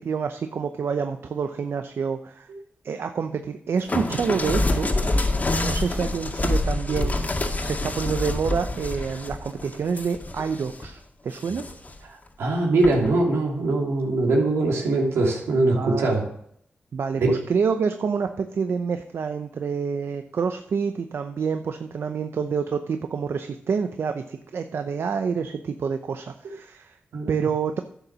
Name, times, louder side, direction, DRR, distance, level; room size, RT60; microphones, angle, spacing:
voice 1, 0.0-2.5 2.8-4.9 5.6-11.6 15.7-16.1 16.9-27.0 27.3-27.8, right 6 dB, 70° right, 7 dB, 0.7 m, -27 dB
sound 1, 3.9-10.9 11.3-12.0 12.8-13.1, left 2 dB, 40° left, 1.9 m, -26 dB
voice 2, 12.4-16.2 17.1-17.3 27.1-27.5, right 2 dB, 85° right, -1 dB, 3.0 m, -22 dB
11.5 x 7.0 x 6.2 m, 0.68 s
cardioid pair, 45°, 4 cm